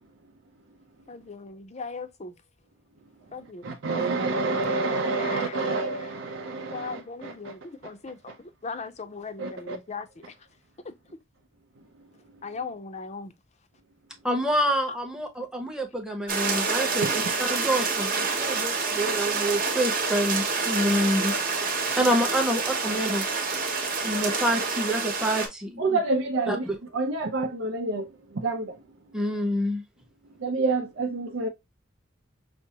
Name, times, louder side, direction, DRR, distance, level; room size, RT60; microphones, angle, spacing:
voice 1, 1.1-2.3 3.3-3.6 5.2-5.7 6.7-8.3 8.6-10.1 10.9-11.0 12.4-13.3, left 4 dB, 35° left, 0.5 m, -38 dB
voice 2, 3.6-7.6 7.8-7.9 8.3-8.4 9.4-9.8 17.0-17.1 21.8-21.9 25.8-26.6 26.9-28.8 30.4-31.5, right 3 dB, 80° right, 0.6 m, -28 dB
voice 3, 14.2-21.3 22.0-23.2 24.0-26.0 26.5-26.8 29.1-29.8, equal, 5° right, 0.8 m, -27 dB
sound 1, 16.3-25.5, right 4 dB, 45° right, 1.0 m, -27 dB
5.9 x 2.0 x 2.8 m
head